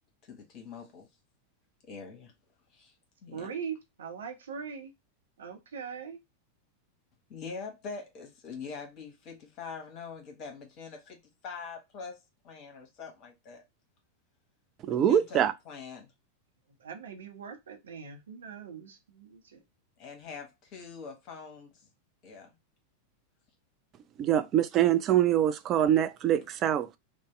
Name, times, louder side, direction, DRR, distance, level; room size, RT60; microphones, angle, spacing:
voice 1, 0.3-1.1 1.9-2.3 2.7-2.9 3.2-3.5 7.3-12.2 12.4-13.6 14.9-16.1 20.0-21.7 22.2-22.5, left 5 dB, 40° left, 1.0 m, -43 dB
voice 2, 3.3-4.9 5.4-6.2 16.8-19.6, right 6 dB, 65° right, 0.6 m, -41 dB
voice 3, 14.8-15.5 24.2-27.0, right 10 dB, 30° right, 0.3 m, -24 dB
2.7 x 2.1 x 3.1 m
figure-of-eight pair, 90°, 0 cm